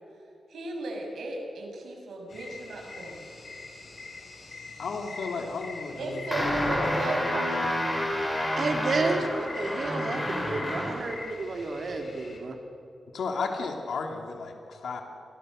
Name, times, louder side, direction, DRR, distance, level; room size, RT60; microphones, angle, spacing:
voice 1, 0.5-3.2 6.0-7.7, right 2 dB, 85° right, 1 dB, 6.9 m, -35 dB
sound 1, 2.3-12.4, left 3 dB, 45° left, 5.1 m, -43 dB
voice 2, 4.8-6.2 13.1-15.0, left 4 dB, 80° left, 3 dB, 3.0 m, -33 dB
sound 2, 6.3-11.1, left 1 dB, 10° left, 4.6 m, -29 dB
voice 3, 8.5-12.5, right 3 dB, 50° right, 4 dB, 3.2 m, -31 dB
30.0 x 23.5 x 6.7 m, 2.9 s
wide cardioid pair, 160°, 0 cm